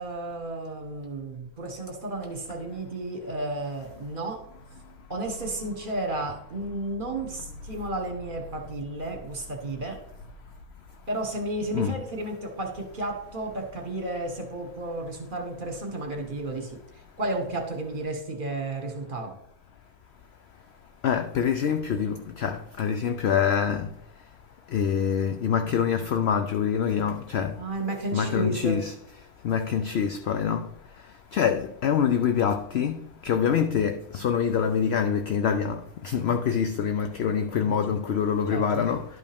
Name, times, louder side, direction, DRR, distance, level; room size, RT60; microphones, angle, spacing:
voice 1, 0.0-4.4 5.1-10.0 11.1-16.8 17.2-19.3 27.6-28.8 37.6-37.7 38.5-38.8, right 2 dB, 35° right, 1.4 m, -32 dB
voice 2, 21.0-23.9 24.7-27.5 28.1-28.9 29.4-30.7 31.3-33.0 33.2-39.1, left 7 dB, 80° left, 0.5 m, -25 dB
11.5 x 5.3 x 3.5 m
omnidirectional pair, 1.6 m